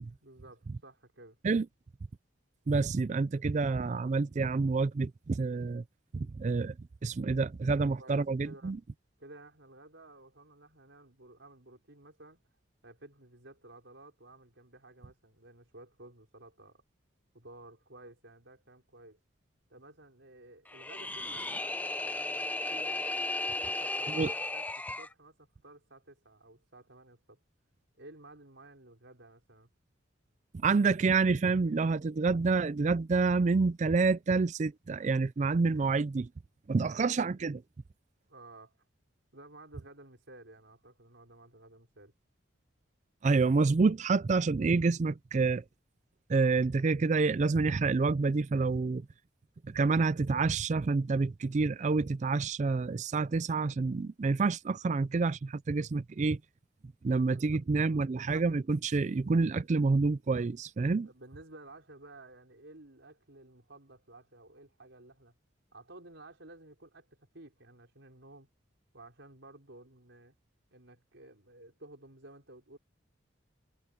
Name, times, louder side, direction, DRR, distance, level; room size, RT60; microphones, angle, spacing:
voice 1, 0.2-1.4 8.0-8.7 9.2-12.4 12.8-16.8 17.3-19.2 19.7-23.1 23.6-24.7 25.0-27.4 28.0-29.7 38.3-38.8 39.3-42.1 57.2-57.4 57.8-58.0 61.0-65.3 65.7-68.5 68.9-70.3 70.7-72.8, right 2 dB, 70° right, 4.7 m, -54 dB
voice 2, 2.7-5.8 6.1-6.7 7.0-8.8 24.1-24.3 30.5-36.3 36.7-37.6 43.2-45.6 46.3-49.0 49.7-56.4 57.0-61.1, right 4 dB, 35° right, 0.4 m, -28 dB
sound 1, 20.7-25.1, left 2 dB, 10° left, 0.7 m, -35 dB
head